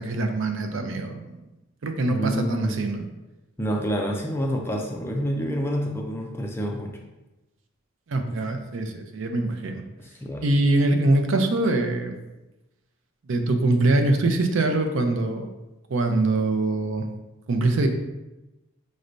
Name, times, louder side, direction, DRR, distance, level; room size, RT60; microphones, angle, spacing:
voice 1, 0.0-1.4 1.8-3.0 8.1-9.8 10.4-12.1 13.3-15.5 15.9-17.1 17.5-17.9, right 2 dB, 60° right, 5 dB, 0.5 m, -23 dB
voice 2, 2.1-2.8 3.6-6.9 10.0-10.6, equal, 10° left, 1 dB, 0.4 m, -28 dB
5.2 x 3.2 x 2.6 m, 1.0 s
head